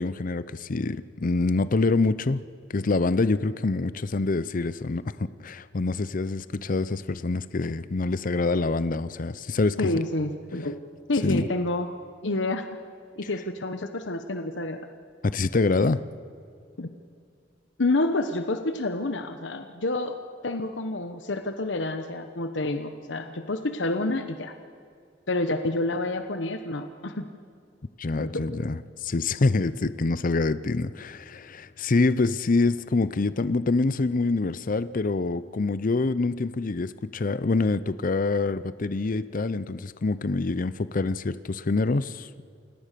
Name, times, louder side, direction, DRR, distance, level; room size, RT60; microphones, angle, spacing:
voice 1, 0.0-2.4 2.7-9.8 11.2-11.4 15.2-16.0 28.0-42.3, left 3 dB, 45° left, 15 dB, 0.6 m, -26 dB
voice 2, 9.8-10.8 11.1-11.9 12.2-12.7 13.2-14.8 16.8-16.9 17.8-20.2 20.4-24.5 25.3-27.3 28.2-28.4, left 2 dB, 70° left, 8 dB, 1.1 m, -28 dB
28.5 x 17.5 x 6.8 m, 2.4 s
head